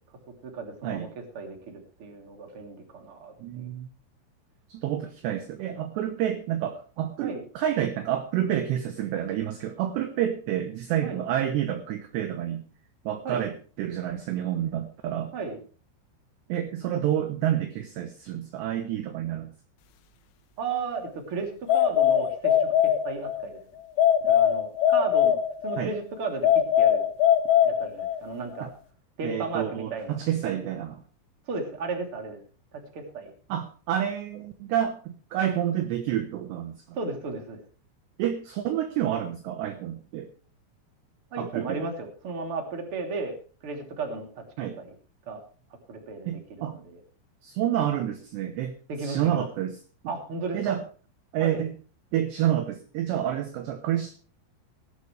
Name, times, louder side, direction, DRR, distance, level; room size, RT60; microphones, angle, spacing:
voice 1, 0.4-3.7 7.2-7.4 11.0-11.2 13.2-13.5 15.3-15.6 20.6-23.6 24.2-27.0 27.6-28.7 29.2-30.2 31.5-32.4 32.7-33.3 37.0-37.6 41.3-43.3 43.6-45.0 45.3-45.4 45.9-47.0 48.9-49.5 50.1-50.8 51.4-51.6, right 4 dB, 30° right, 2 dB, 3.0 m, -35 dB
voice 2, 3.4-3.9 4.7-12.6 13.0-15.3 16.5-19.5 25.8-25.9 28.6-28.7 29.2-31.0 33.5-37.0 38.2-40.3 41.4-41.8 44.6-44.8 46.3-46.8 47.4-50.1 50.5-50.8 51.3-51.8 52.1-54.1, right 11 dB, 70° right, 7 dB, 2.8 m, -29 dB
sound 1, 21.7-23.5 24.0-25.9 26.4-28.3, left 10 dB, 85° left, 3.7 m, -21 dB
18.0 x 12.5 x 3.3 m, 0.39 s
omnidirectional pair, 6.0 m